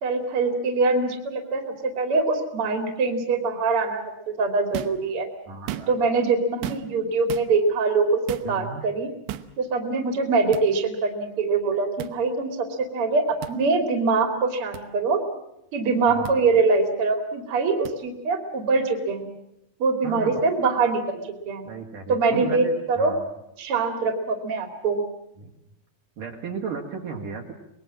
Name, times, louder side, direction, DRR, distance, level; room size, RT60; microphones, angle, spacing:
voice 1, 0.0-5.3 5.9-9.1 9.6-15.2 15.7-19.3 19.8-21.2 21.5-21.6 22.1-23.1 23.6-25.0, right 4 dB, 40° right, 6 dB, 3.1 m, -23 dB
sound 1, 4.7-5.0 5.5-6.1 6.6-7.0 7.3-7.5 8.3-8.5 9.3-9.5 10.5-10.7 12.0-12.1 13.4-13.6 14.7-14.8 16.2-16.4 17.9-18.0, right 11 dB, 85° right, 3.2 m, -34 dB
voice 2, 5.5-5.9 8.4-8.8 16.1-16.4 20.0-20.4 21.6-23.3 25.4-25.5 26.2-27.5, right 5 dB, 60° right, 0 dB, 3.3 m, -35 dB
25.0 x 21.0 x 7.5 m, 0.86 s
omnidirectional pair, 4.7 m